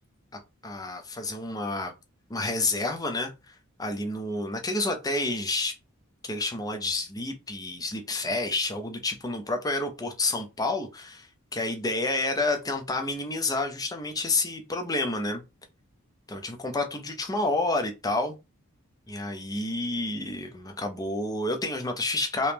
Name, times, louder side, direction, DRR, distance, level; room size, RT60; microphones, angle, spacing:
voice 1, 0.6-1.9 2.3-5.8 6.2-15.4 16.3-18.3 19.1-22.5, left 2 dB, 15° left, 0.6 m, -29 dB
3.0 x 2.9 x 3.5 m
head